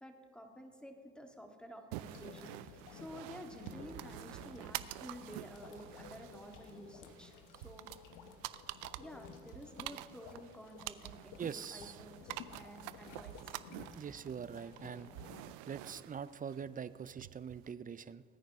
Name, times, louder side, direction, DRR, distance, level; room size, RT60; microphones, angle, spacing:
voice 1, 0.0-7.9 9.0-13.6, equal, 5° left, 3 dB, 1.8 m, -52 dB
sound 1, 1.9-17.7, right 16 dB, 90° right, 0.5 m, -48 dB
sound 2, 2.0-15.6, left 7 dB, 70° left, 1.1 m, -55 dB
voice 2, 11.4-12.0 13.9-15.1 15.7-18.2, right 7 dB, 25° right, 16 dB, 0.5 m, -43 dB
21.0 x 9.2 x 3.6 m, 2.2 s
supercardioid pair, 75°, 33 cm